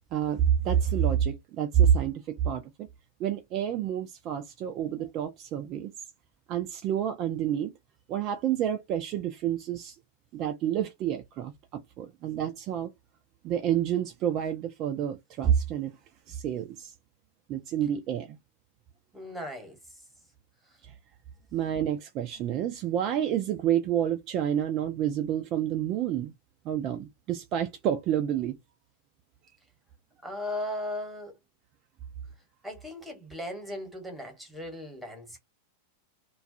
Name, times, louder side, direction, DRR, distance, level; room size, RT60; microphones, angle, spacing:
voice 1, 0.1-2.9 3.2-5.9 6.5-7.7 8.1-10.0 10.3-12.9 13.4-15.9 16.3-16.9 17.5-18.4 20.9-21.0 21.5-26.3 26.6-28.6, right 10 dB, 35° right, 0.4 m, -28 dB
voice 2, 19.1-19.8 30.2-31.4 32.6-35.4, left 1 dB, 5° right, 1.1 m, -37 dB
2.2 x 2.2 x 2.5 m
figure-of-eight pair, 90°, 0 cm